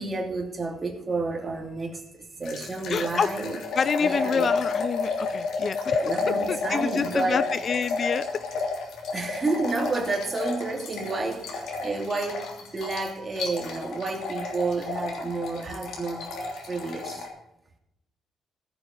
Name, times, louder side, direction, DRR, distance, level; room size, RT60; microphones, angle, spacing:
voice 1, 0.0-3.6 4.0-4.5 6.0-7.5 9.1-16.3 16.7-17.3, right 3 dB, 30° right, 2 dB, 2.8 m, -30 dB
sound 1, 2.4-17.3, left 4 dB, 75° left, 3.1 m, -31 dB
voice 2, 2.9-3.3 3.7-6.1 6.5-8.3, left 6 dB, 50° left, 15 dB, 0.5 m, -27 dB
16.0 x 7.8 x 5.5 m, 0.85 s
cardioid pair, 90°, 0 cm